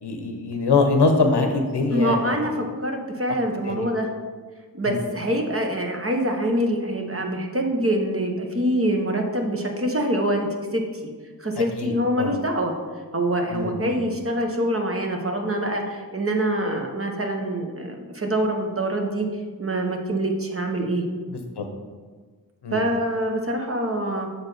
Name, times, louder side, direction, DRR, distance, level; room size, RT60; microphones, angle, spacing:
voice 1, 0.0-2.4 3.7-3.9 4.9-5.0 11.8-12.3 13.5-13.9 21.6-21.7 22.6-22.8, left 3 dB, 70° left, 4 dB, 0.9 m, -23 dB
voice 2, 1.9-4.1 4.7-11.1 11.4-12.7 13.1-19.3 19.6-21.0 22.7-24.3, right 1 dB, 35° right, 2 dB, 1.1 m, -25 dB
6.4 x 4.1 x 4.9 m, 1.5 s
cardioid pair, 45°, 42 cm